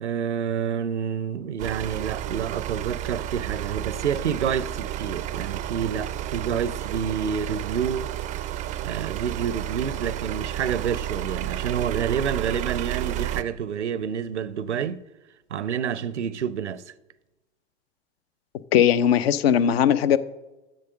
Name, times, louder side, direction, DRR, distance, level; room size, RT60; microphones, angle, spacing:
voice 1, 0.0-8.1 8.8-15.0 15.5-16.8, right 7 dB, 85° right, 0.5 m, -28 dB
sound 1, 1.6-13.4, right 13 dB, 25° right, 0.4 m, -31 dB
voice 2, 18.7-20.2, left 9 dB, 60° left, 0.6 m, -19 dB
7.7 x 7.3 x 7.3 m
figure-of-eight pair, 85°, 34 cm